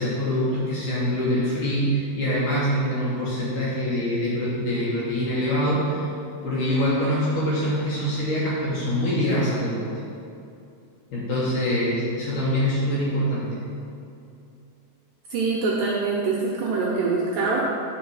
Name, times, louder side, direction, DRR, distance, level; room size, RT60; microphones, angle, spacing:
voice 1, 0.0-6.1 6.4-9.9 11.1-13.6, equal, 65° left, -7 dB, 2.2 m, -24 dB
voice 2, 15.3-17.6, right 4 dB, 80° right, -4 dB, 2.1 m, -24 dB
9.8 x 4.1 x 4.7 m, 2.5 s
omnidirectional pair, 4.7 m